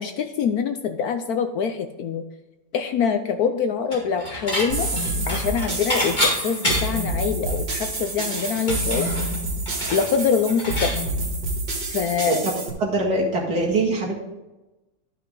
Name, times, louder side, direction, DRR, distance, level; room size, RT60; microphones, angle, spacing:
voice 1, 0.0-2.2 2.7-4.9 5.3-9.1 9.9-11.0 11.9-12.4, left 6 dB, 70° left, 8 dB, 1.0 m, -24 dB
Dishes pots and pans / Chink clink, 3.9-4.7 5.0-7.1 7.5-7.6 7.9-11.0, equal, 25° left, 2.4 m, -27 dB
sound 1, 4.7-12.7, right 1 dB, 80° right, 2.6 m, -28 dB
voice 2, 12.8-14.2, right 2 dB, 60° right, -2 dB, 2.4 m, -23 dB
11.5 x 5.8 x 3.8 m, 1.0 s
omnidirectional pair, 1.9 m